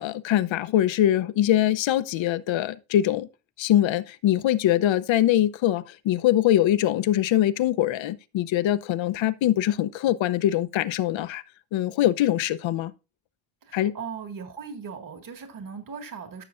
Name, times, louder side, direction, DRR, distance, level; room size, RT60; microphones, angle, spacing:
voice 1, 0.0-3.3 3.6-11.4 11.7-12.9 13.7-13.9, left 12 dB, 70° left, 0.8 m, -23 dB
voice 2, 13.6-16.4, right 6 dB, 45° right, 2.0 m, -38 dB
14.0 x 6.6 x 2.5 m
cardioid pair, 145°, 47 cm